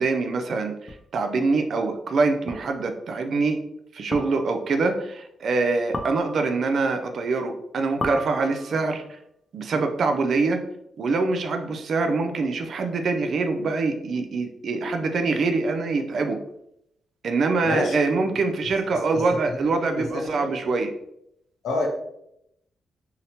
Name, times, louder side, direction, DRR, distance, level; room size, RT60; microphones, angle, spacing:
voice 1, 0.0-3.6 3.9-9.0 9.5-10.6 11.0-16.4 17.2-20.9, right 3 dB, 60° right, 5 dB, 0.3 m, -24 dB
sound 1, 0.9-1.0 2.5-2.8 4.1-4.7 5.9-6.7 8.0-8.9, left 1 dB, 35° left, 0.4 m, -34 dB
voice 2, 17.6-18.0 18.9-20.5 21.6-21.9, left 2 dB, 80° left, 1 dB, 0.6 m, -29 dB
2.8 x 2.0 x 2.7 m, 0.78 s
cardioid pair, 105°, 0 cm